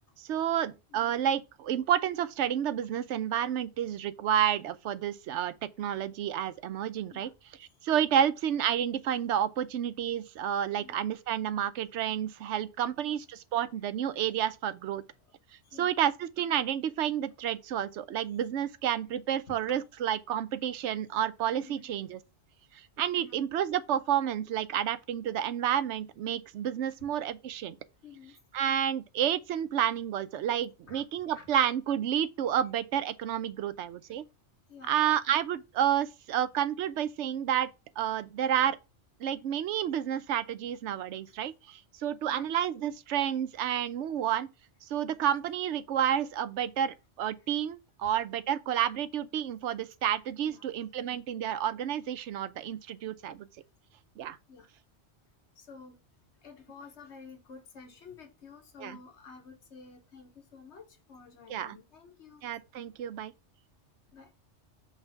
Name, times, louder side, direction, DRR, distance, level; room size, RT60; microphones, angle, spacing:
voice 1, 0.2-7.3 7.8-15.0 15.8-22.2 22.7-27.8 28.5-34.2 34.9-37.7 38.0-38.8 39.2-44.5 44.8-53.5 54.2-54.4 58.8-59.0 61.5-61.8 62.4-63.3, right 10 dB, 85° right, 0.9 m, -30 dB
voice 2, 10.8-11.1 12.8-13.2 15.6-15.9 19.5-19.8 21.6-21.9 23.2-23.4 28.0-28.3 30.8-31.5 34.7-35.0 41.3-41.4 42.2-42.5 47.4-47.5 50.4-50.7 54.5-54.7 55.6-56.0 56.4-62.5 64.1-64.3, left 5 dB, 75° left, 1.5 m, -51 dB
5.8 x 3.3 x 5.6 m
omnidirectional pair, 1.2 m